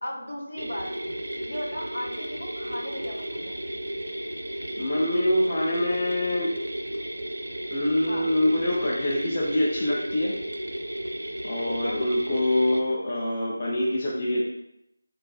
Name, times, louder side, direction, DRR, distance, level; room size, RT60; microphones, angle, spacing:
voice 1, 0.0-0.9 1.4-3.6 8.1-8.3 11.7-12.0, left 1 dB, 70° left, -1 dB, 0.8 m, -35 dB
sound 1, 0.6-12.8, right 1 dB, 75° right, 0.4 m, -34 dB
voice 2, 4.8-6.5 7.7-10.3 11.4-14.4, left 1 dB, 25° left, -5 dB, 0.4 m, -25 dB
4.0 x 2.4 x 2.2 m, 0.83 s
figure-of-eight pair, 175°, 0 cm